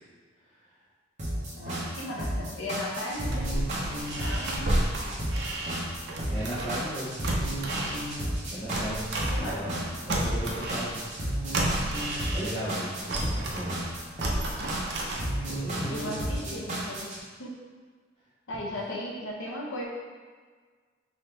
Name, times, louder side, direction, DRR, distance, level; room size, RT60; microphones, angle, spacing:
sound 1, 1.2-17.2, right 1 dB, 35° right, 0.9 m, -32 dB
voice 1, 1.5-3.6 4.2-4.8 9.3-9.9 15.9-17.1 17.4-17.5 18.5-19.9, left 1 dB, 85° left, -3 dB, 0.8 m, -36 dB
sound 2, 3.1-6.9 7.2-9.8 10.1-12.7 13.1-15.6 16.0-16.1, right 1 dB, 60° right, 0.6 m, -32 dB
voice 2, 6.3-7.3 8.5-9.1 9.4-10.9 12.3-13.8 15.5-16.1 16.4-16.7, equal, 30° left, -10 dB, 0.7 m, -36 dB
3.9 x 3.0 x 3.3 m, 1.5 s
head